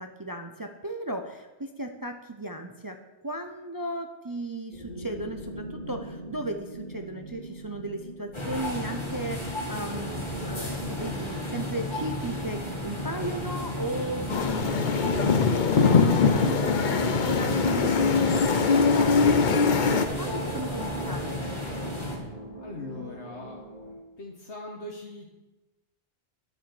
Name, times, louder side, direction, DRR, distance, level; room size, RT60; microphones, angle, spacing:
voice 1, 0.0-3.0 3.2-21.4, right 1 dB, 25° right, 5 dB, 0.6 m, -36 dB
sound 1, 4.7-23.9, right 2 dB, 45° right, 2.6 m, -41 dB
sound 2, 8.3-22.2, left 1 dB, 25° left, 2.4 m, -33 dB
sound 3, 14.3-20.0, left 5 dB, 50° left, 0.8 m, -22 dB
voice 2, 22.6-23.7 24.2-25.3, left 3 dB, 80° left, 0 dB, 1.4 m, -40 dB
10.0 x 7.2 x 7.1 m, 1.1 s
omnidirectional pair, 1.2 m